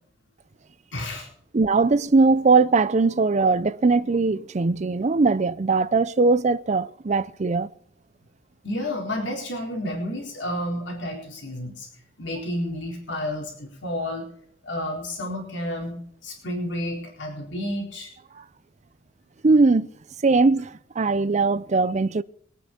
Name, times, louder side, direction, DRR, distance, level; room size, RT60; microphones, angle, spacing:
voice 1, 0.9-1.3 8.6-11.9 12.2-14.3 14.6-18.1, left 1 dB, 70° left, 4.0 m, -31 dB
voice 2, 1.5-7.7 19.4-19.9 20.2-22.2, right 3 dB, 40° right, 0.5 m, -20 dB
23.0 x 9.3 x 4.4 m
head